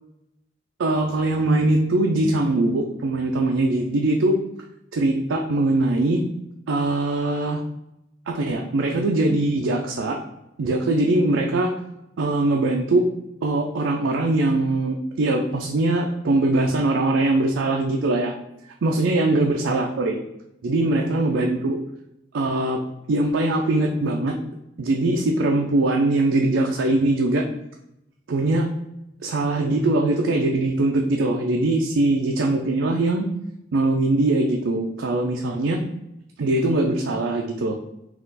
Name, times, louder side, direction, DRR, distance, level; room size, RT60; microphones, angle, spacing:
voice 1, 0.8-4.4 4.9-6.2 6.7-7.6 8.3-10.2 10.6-11.7 12.2-13.1 13.4-18.3 18.8-20.2 20.6-21.8 22.3-22.8 23.1-24.3 24.8-27.5 28.3-28.7 29.2-33.3 33.7-35.8 36.4-37.8, right 2 dB, 90° right, 1 dB, 0.4 m, -21 dB
4.2 x 2.4 x 3.9 m, 0.86 s
head